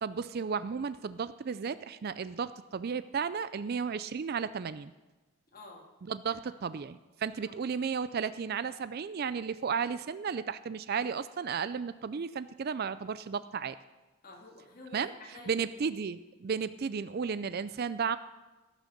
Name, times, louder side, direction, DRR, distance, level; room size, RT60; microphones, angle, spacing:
voice 1, 0.0-4.9 6.1-13.8 14.9-15.1 15.5-18.2, right 6 dB, 45° right, 15 dB, 0.3 m, -34 dB
voice 2, 5.5-5.8 7.4-7.5 14.2-16.0, left 2 dB, 40° left, -1 dB, 2.6 m, -50 dB
17.0 x 6.4 x 6.5 m, 1.1 s
head